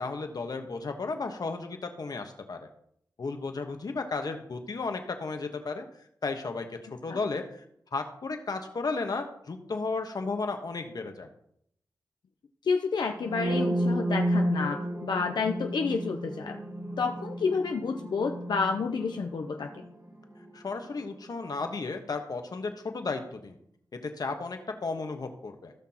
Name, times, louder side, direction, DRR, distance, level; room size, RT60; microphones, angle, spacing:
voice 1, 0.0-2.6 3.2-5.9 6.2-6.7 7.0-7.6 7.9-11.3 20.5-23.6 24.0-25.7, left 3 dB, 60° left, 5 dB, 1.4 m, -34 dB
voice 2, 12.6-16.6 17.0-19.9, left 5 dB, 75° left, 4 dB, 0.7 m, -30 dB
sound 1, 13.2-21.0, right 1 dB, 50° right, 2.3 m, -32 dB
17.0 x 6.1 x 3.0 m, 0.70 s
cardioid pair, 70°, 7 cm